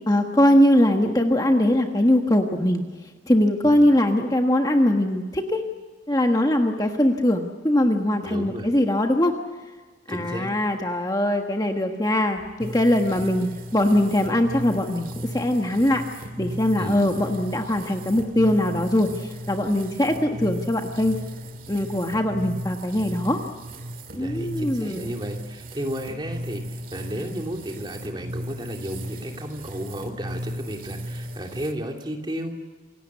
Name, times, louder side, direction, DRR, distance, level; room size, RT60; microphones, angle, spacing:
voice 1, 0.1-2.8 3.3-5.6 6.1-9.4 10.1-16.0 16.4-21.2 21.7-23.4 24.2-25.1, left 1 dB, 20° left, 3 dB, 1.4 m, -21 dB
voice 2, 8.2-8.7 10.1-10.5 13.1-13.3 16.8-17.2 24.1-32.6, equal, 25° right, 2 dB, 2.8 m, -33 dB
sound 1, 12.6-31.7, equal, 45° right, 2.2 m, -36 dB
28.0 x 17.0 x 8.3 m, 1.4 s
head